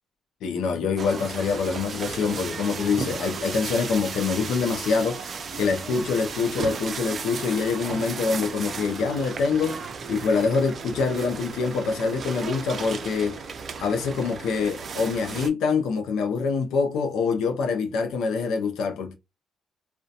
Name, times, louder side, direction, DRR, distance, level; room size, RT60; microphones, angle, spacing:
voice 1, 0.4-9.8 10.1-13.4 13.8-19.1, left 5 dB, 80° left, 0.4 m, -25 dB
sound 1, 1.0-15.5, right 5 dB, 45° right, 0.4 m, -35 dB
2.6 x 2.1 x 2.3 m
cardioid pair, 90°, 0 cm